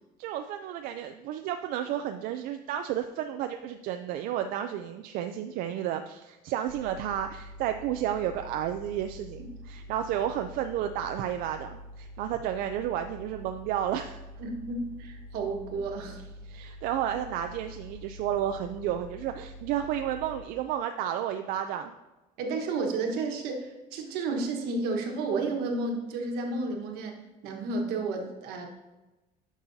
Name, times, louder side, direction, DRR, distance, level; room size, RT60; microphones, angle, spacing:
voice 1, 0.2-14.2 16.4-21.9, right 10 dB, 65° right, 7 dB, 0.4 m, -32 dB
sound 1, 6.7-20.4, left 1 dB, 85° left, 1.4 m, -46 dB
voice 2, 14.4-16.2 22.4-27.1 27.4-28.7, right 3 dB, 80° right, 3 dB, 1.3 m, -32 dB
9.4 x 6.1 x 2.7 m, 1.1 s
cardioid pair, 170°, 16 cm